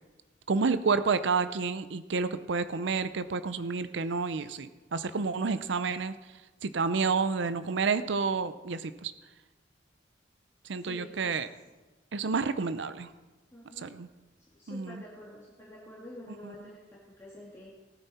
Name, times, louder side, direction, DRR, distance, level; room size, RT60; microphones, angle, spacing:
voice 1, 0.5-6.1 6.6-9.1 10.6-11.5 12.1-13.1 13.8-14.1 14.7-15.0 16.4-16.5, right 4 dB, 70° right, 12 dB, 0.5 m, -29 dB
voice 2, 10.8-11.4 13.5-13.9 14.4-17.7, left 1 dB, 15° left, -7 dB, 2.2 m, -48 dB
18.5 x 9.1 x 4.2 m, 1.2 s
head